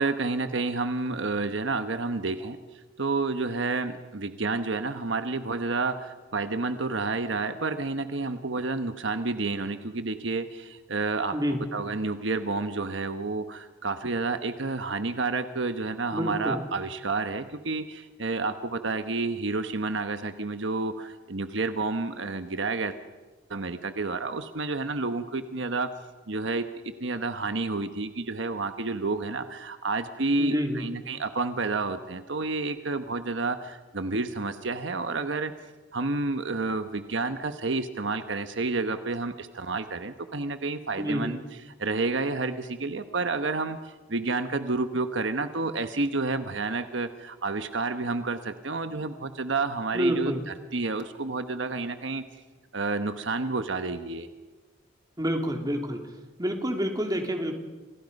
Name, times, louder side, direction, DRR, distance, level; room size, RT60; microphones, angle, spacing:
voice 1, 0.0-11.4 11.7-23.0 23.5-26.0 26.3-35.5 35.9-52.2 52.7-54.3, right 3 dB, 70° right, 9 dB, 1.2 m, -30 dB
voice 2, 16.1-16.6 30.4-30.8 41.0-41.4 49.9-50.4 55.2-56.0 56.4-57.6, equal, 20° right, 4 dB, 2.9 m, -28 dB
30.0 x 26.5 x 5.4 m, 1.3 s
head